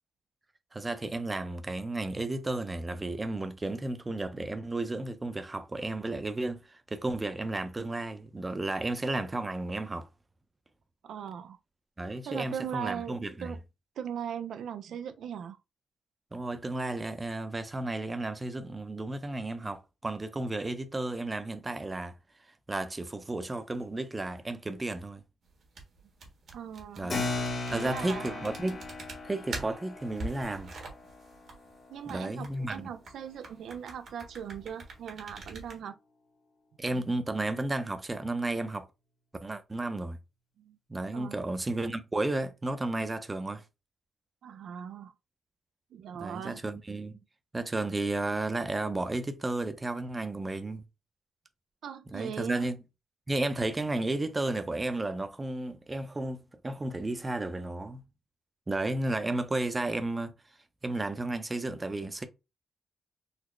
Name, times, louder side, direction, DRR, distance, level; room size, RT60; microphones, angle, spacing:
voice 1, 0.7-10.1 12.0-13.5 16.3-22.2 22.7-25.2 27.0-27.2 27.7-28.8 29.2-30.7 32.1-32.9 36.8-38.9 39.4-40.2 40.9-43.6 46.1-47.1 47.5-50.8 52.1-52.8 53.3-58.0 58.7-60.3 60.8-62.3, right 2 dB, 25° right, 0.6 m, -33 dB
voice 2, 11.0-11.6 12.3-13.2 13.4-13.6 14.0-15.6 26.5-27.3 27.7-28.4 31.9-36.0 40.6-40.8 41.1-41.4 44.4-45.1 45.9-46.6 51.8-52.7, right 8 dB, 85° right, 0.3 m, -39 dB
sound 1, 25.5-35.8, right 2 dB, 65° right, 1.3 m, -45 dB
Keyboard (musical), 27.1-33.1, left 3 dB, 45° left, 1.0 m, -38 dB
4.0 x 2.0 x 3.1 m
cardioid pair, 85°, 0 cm